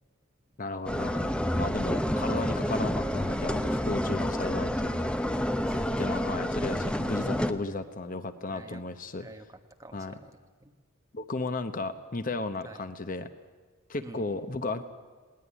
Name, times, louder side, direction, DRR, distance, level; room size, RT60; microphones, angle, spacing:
voice 1, 0.6-5.1 6.0-9.3 9.9-10.2 11.1-13.3 13.9-14.8, left 3 dB, 40° left, 10 dB, 0.8 m, -34 dB
sound 1, 0.9-7.5, equal, 5° left, 0.7 m, -29 dB
voice 2, 5.6-6.3 8.5-8.8 9.2-10.3 10.6-10.7 12.6-12.8 14.0-14.4, right 1 dB, 15° right, 5 dB, 1.4 m, -47 dB
21.0 x 18.0 x 10.0 m, 1.5 s
head